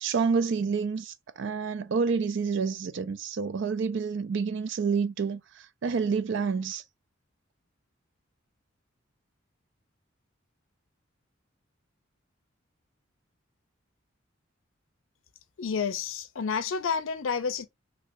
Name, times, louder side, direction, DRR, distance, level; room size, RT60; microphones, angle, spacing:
voice 1, 0.0-5.4 5.8-6.8, right 5 dB, 60° right, 0.4 m, -28 dB
voice 2, 15.6-17.7, left 6 dB, 80° left, 0.5 m, -30 dB
3.1 x 2.8 x 2.8 m
head